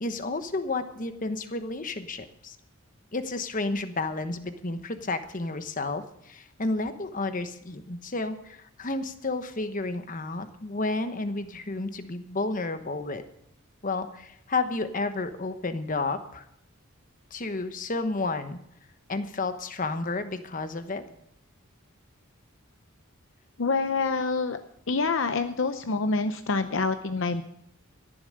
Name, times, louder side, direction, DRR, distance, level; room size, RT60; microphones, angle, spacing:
voice 1, 0.0-2.6 3.1-13.2 13.8-16.4 17.3-18.6 19.1-21.0, left 3 dB, 40° left, 9 dB, 1.1 m, -31 dB
voice 2, 23.6-24.6 24.9-27.4, left 4 dB, 60° left, 8 dB, 0.7 m, -26 dB
13.5 x 11.0 x 6.6 m, 0.76 s
head